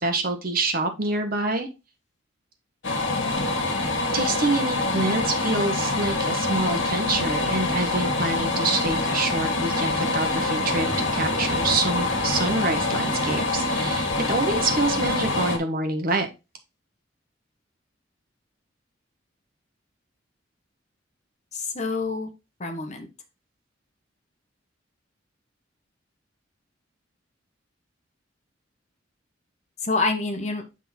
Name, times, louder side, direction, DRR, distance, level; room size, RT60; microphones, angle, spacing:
voice 1, 0.0-1.7 4.1-16.3, right 2 dB, 50° right, 5 dB, 1.1 m, -26 dB
sound 1, 2.8-15.6, left 2 dB, 75° left, 1.5 m, -25 dB
voice 2, 21.5-22.3 22.6-23.1 29.8-30.6, left 3 dB, 35° left, 5 dB, 1.1 m, -27 dB
7.7 x 3.6 x 4.2 m, 0.27 s
head